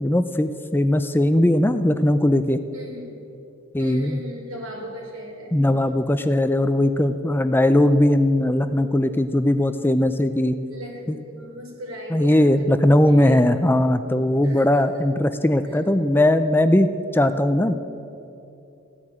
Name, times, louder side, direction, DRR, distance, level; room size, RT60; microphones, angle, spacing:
voice 1, 0.0-2.6 3.7-4.2 5.5-10.6 11.1-11.2 12.1-17.7, left 1 dB, 10° left, 10 dB, 0.4 m, -19 dB
voice 2, 2.7-3.2 3.8-5.6 5.8-6.0 10.7-13.4 14.4-15.0 15.6-15.8, equal, 85° right, -1 dB, 4.0 m, -38 dB
16.0 x 10.0 x 8.7 m, 2.8 s
head